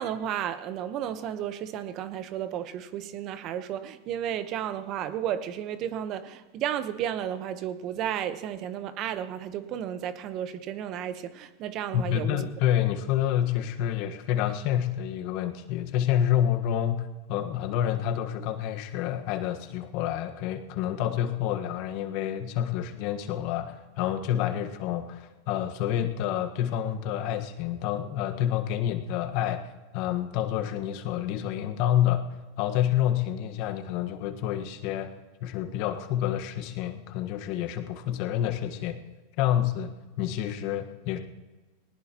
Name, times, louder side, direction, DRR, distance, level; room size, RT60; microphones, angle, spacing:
voice 1, 0.0-12.4, right 10 dB, 45° right, 1.0 m, -33 dB
voice 2, 11.9-32.2 32.6-35.1 35.4-39.0 39.4-41.2, left 11 dB, 55° left, 1.4 m, -28 dB
19.0 x 19.0 x 3.0 m
hypercardioid pair, 110°, 0 cm